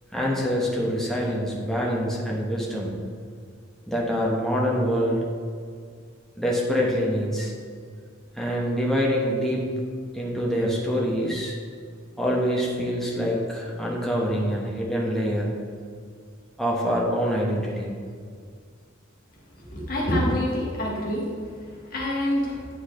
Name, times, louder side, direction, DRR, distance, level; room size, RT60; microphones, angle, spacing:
voice 1, 0.1-3.0 3.9-5.2 6.4-7.5 8.4-9.6 10.1-11.5 12.2-15.5 16.6-17.9, equal, ahead, -4 dB, 1.0 m, -25 dB
voice 2, 19.7-21.2 21.9-22.6, left 1 dB, 45° left, -4 dB, 1.4 m, -25 dB
9.7 x 4.6 x 3.1 m, 2.1 s
head